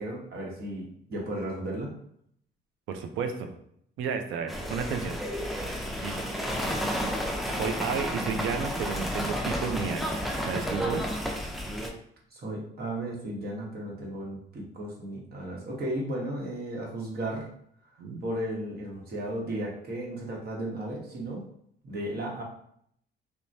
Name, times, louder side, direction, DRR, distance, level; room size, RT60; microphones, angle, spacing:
voice 1, 0.0-1.9 12.3-17.5 18.2-21.4 21.8-22.4, right 1 dB, 50° right, -2 dB, 1.0 m, -34 dB
voice 2, 2.9-3.5 4.0-5.2 6.0-6.7 7.5-11.0 18.0-18.2, right 6 dB, 85° right, 6 dB, 0.5 m, -33 dB
sound 1, 4.5-11.9, equal, ahead, 0.4 m, -31 dB
3.1 x 2.1 x 2.6 m, 0.68 s
cardioid pair, 90°, 20 cm